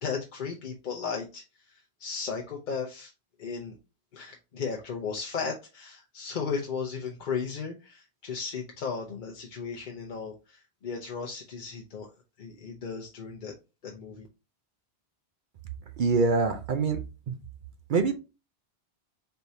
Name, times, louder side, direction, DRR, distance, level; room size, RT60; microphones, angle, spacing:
voice 1, 0.0-1.4 2.0-3.1 3.4-3.8 4.1-12.1 12.4-13.5 13.8-14.3, left 5 dB, 55° left, 0.7 m, -35 dB
voice 2, 16.0-17.0 17.3-17.4 17.9-18.2, right 4 dB, 55° right, 0.7 m, -24 dB
4.4 x 3.3 x 2.7 m
omnidirectional pair, 1.1 m